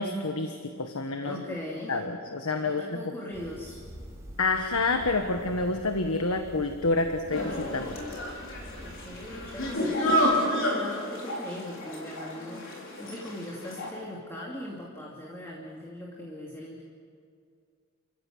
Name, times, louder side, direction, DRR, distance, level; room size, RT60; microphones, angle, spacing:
voice 1, 0.0-1.4 1.9-2.8 4.4-8.0, left 3 dB, 85° left, 6 dB, 1.4 m, -28 dB
voice 2, 1.2-2.0 2.6-3.8 8.8-16.8, left 1 dB, 10° left, -3 dB, 2.7 m, -40 dB
sound 1, 3.3-9.7, equal, 15° right, 4.2 m, -46 dB
sound 2, 7.3-13.9, equal, 65° left, 5.3 m, -30 dB
30.0 x 15.5 x 7.8 m, 2.3 s
head